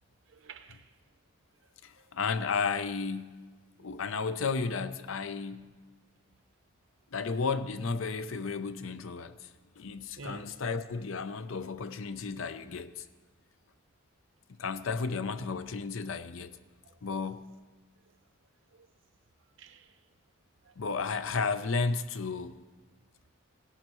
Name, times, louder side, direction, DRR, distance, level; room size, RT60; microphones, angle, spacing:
voice 1, 0.3-1.0 1.6-1.7 2.0-2.1 3.8-4.0 4.3-4.4 10.2-10.7 16.8-17.4 18.0-18.1 18.7-18.9 19.6-20.1 20.6-20.8, right 3 dB, 60° right, 0.7 m, -51 dB
voice 2, 1.8-3.4 3.8-5.7 7.1-9.5 9.8-13.0 14.6-16.5 17.0-17.5 20.8-22.6, left 4 dB, 70° left, 0.5 m, -33 dB
17.5 x 11.5 x 3.0 m
head